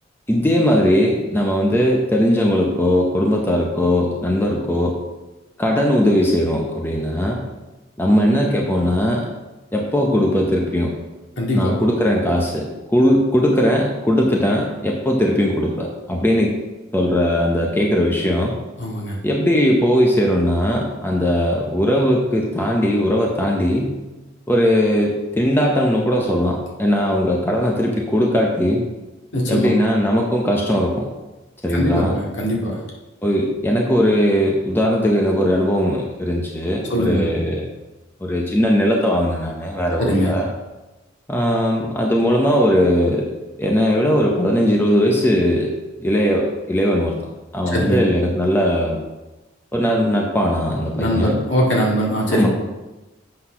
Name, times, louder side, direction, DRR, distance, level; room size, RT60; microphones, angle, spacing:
voice 1, 0.3-5.0 5.6-7.4 8.0-9.3 9.7-10.9 11.5-16.5 16.9-18.5 19.2-24.0 24.5-28.8 29.5-31.1 31.6-32.1 33.2-37.7 38.2-40.5 41.3-43.3 43.6-45.7 46.0-47.2 47.5-49.0 49.7-51.4 52.3-52.5, equal, 10° left, -1 dB, 0.7 m, -19 dB
voice 2, 11.4-11.8 18.8-19.2 29.3-29.7 31.7-32.8 36.9-37.2 40.0-40.4 47.7-48.0 50.9-52.5, equal, 65° left, -3 dB, 2.1 m, -21 dB
7.7 x 4.1 x 5.7 m, 1.1 s
head